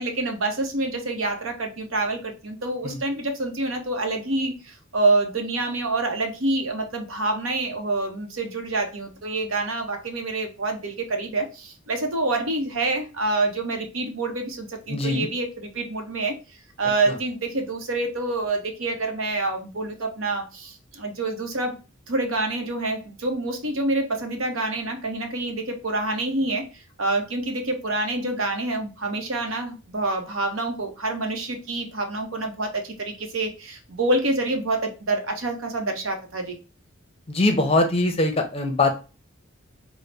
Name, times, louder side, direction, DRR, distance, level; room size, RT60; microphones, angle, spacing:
voice 1, 0.0-16.4 16.8-21.8 22.1-26.7 27.0-36.6, right 2 dB, 80° right, 0.8 m, -27 dB
voice 2, 14.9-15.3 17.1-17.2 37.3-38.9, left 2 dB, 30° left, 0.5 m, -22 dB
3.9 x 2.0 x 3.3 m
head